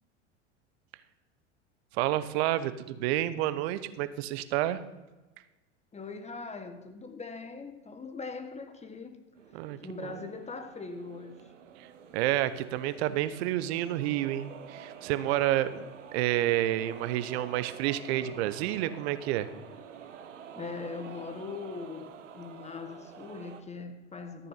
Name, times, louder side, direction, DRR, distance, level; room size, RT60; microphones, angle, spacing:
voice 1, 2.0-4.8 9.5-10.1 12.1-15.8 16.1-19.5, right 14 dB, 60° right, 0.9 m, -29 dB
voice 2, 5.9-9.2 9.8-11.5 15.7-15.9 20.5-24.5, left 4 dB, 20° left, 1.3 m, -41 dB
sound 1, 9.4-23.6, right 8 dB, 85° right, 1.0 m, -48 dB
13.5 x 6.8 x 5.8 m
hypercardioid pair, 85°, 36 cm